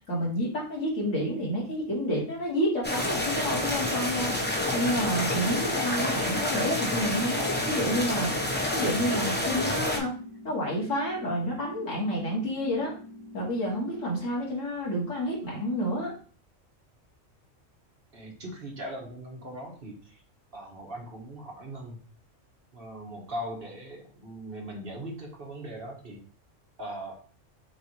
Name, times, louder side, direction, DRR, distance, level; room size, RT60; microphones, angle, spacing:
voice 1, 0.1-4.4 4.7-8.3 8.7-10.2 10.4-12.9 13.3-16.1, equal, 75° left, -3 dB, 2.1 m, -29 dB
sound 1, 2.8-10.0, left 1 dB, 10° left, 0.8 m, -28 dB
sound 2, 4.3-14.3, left 1 dB, 55° left, 1.0 m, -46 dB
voice 2, 18.1-20.2 20.5-22.0 22.7-26.2 26.8-27.2, right 1 dB, 50° right, -1 dB, 1.4 m, -40 dB
6.7 x 2.6 x 3.1 m, 0.40 s
omnidirectional pair, 1.3 m